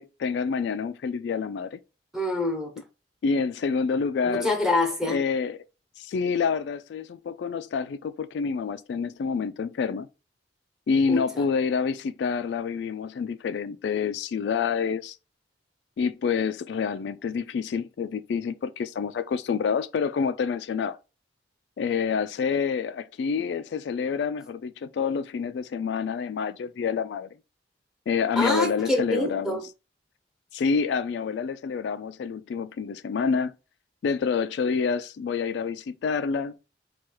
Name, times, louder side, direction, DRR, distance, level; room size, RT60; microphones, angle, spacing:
voice 1, 0.0-1.8 3.2-4.5 5.0-5.6 6.0-10.1 10.9-15.2 16.0-21.0 21.8-27.3 28.1-29.6 30.5-33.6 34.0-36.6, left 5 dB, 65° left, 0.3 m, -27 dB
voice 2, 2.1-2.7 4.3-5.2 11.1-11.2 28.4-29.6, left 2 dB, 5° right, 1.0 m, -25 dB
4.5 x 2.3 x 4.5 m
head